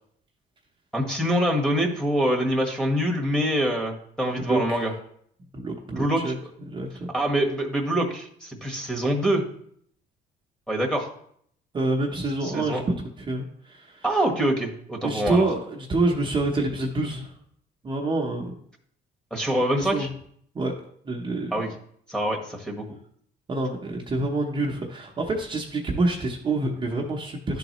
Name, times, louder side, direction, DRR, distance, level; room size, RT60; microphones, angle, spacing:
voice 1, 0.9-4.9 5.9-6.3 7.1-9.4 10.7-11.1 12.4-12.8 14.0-15.4 19.3-20.1 21.5-21.7 22.1-22.8, equal, 5° left, -2 dB, 1.3 m, -25 dB
voice 2, 4.5-4.9 5.5-6.4 6.7-7.1 11.7-12.8 13.2-14.0 15.0-17.3 17.8-18.5 19.7-20.1 20.5-20.7 21.0-21.5 23.5-27.6, right 2 dB, 30° right, -1 dB, 0.9 m, -27 dB
11.0 x 3.9 x 3.0 m, 0.65 s
cardioid pair, 110°, 17 cm